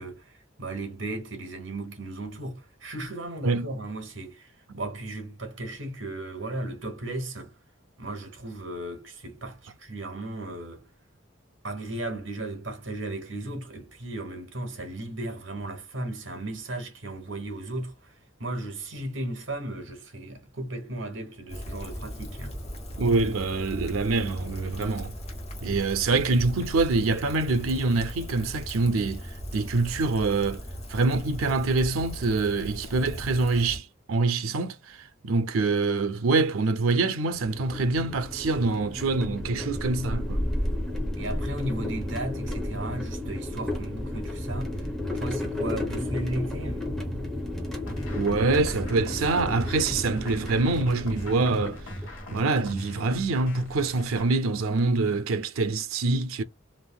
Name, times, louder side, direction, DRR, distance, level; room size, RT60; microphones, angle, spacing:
voice 1, 0.0-7.5 8.0-10.8 11.6-18.1 18.4-22.6 41.2-44.9 45.1-47.0, right 1 dB, 65° right, 1.1 m, -35 dB
Rain, 21.5-33.8, equal, 30° left, 1.1 m, -38 dB
voice 2, 23.0-25.1 25.6-29.3 29.5-30.6 30.9-35.0 35.2-40.4 48.2-51.8 52.3-56.4, right 3 dB, 90° right, 0.5 m, -25 dB
sound 1, 37.3-52.3, left 1 dB, ahead, 0.8 m, -32 dB
sound 2, 47.9-54.3, equal, 80° left, 1.3 m, -39 dB
3.4 x 2.6 x 2.2 m
head